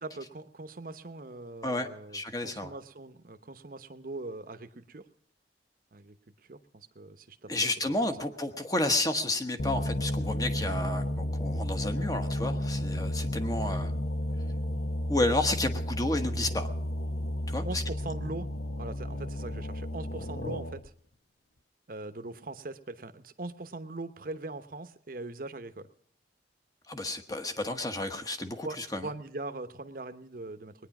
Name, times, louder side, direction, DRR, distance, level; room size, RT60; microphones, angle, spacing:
voice 1, 0.0-5.1 5.9-6.2 6.5-7.5 7.8-7.9 8.2-8.3 17.6-20.9 21.9-25.9 28.6-30.7, right 2 dB, 50° right, 10 dB, 0.9 m, -41 dB
voice 2, 1.6-2.7 7.5-13.9 15.1-16.7 17.5-17.8 26.9-29.1, left 2 dB, 20° left, 7 dB, 1.1 m, -31 dB
sound 1, 9.6-20.9, left 1 dB, 60° left, 0.8 m, -32 dB
20.5 x 9.9 x 6.0 m, 0.65 s
head